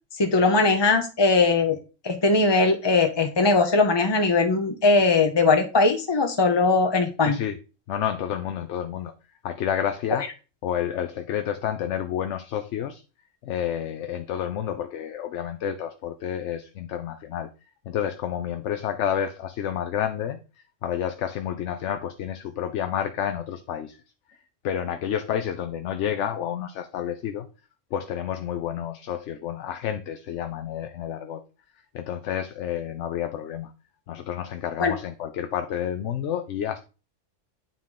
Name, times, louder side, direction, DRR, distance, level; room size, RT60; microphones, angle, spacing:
voice 1, 0.2-1.8 2.0-7.4 34.8-34.9, left 3 dB, 35° left, 0.4 m, -20 dB
voice 2, 7.3-7.6 7.9-9.1 9.4-10.2 10.6-13.0 13.4-17.5 17.9-20.4 20.8-24.0 24.6-27.5 27.9-31.4 31.9-33.7 34.1-36.8, left 9 dB, 70° left, 0.9 m, -29 dB
9.3 x 3.7 x 3.8 m
omnidirectional pair, 1.3 m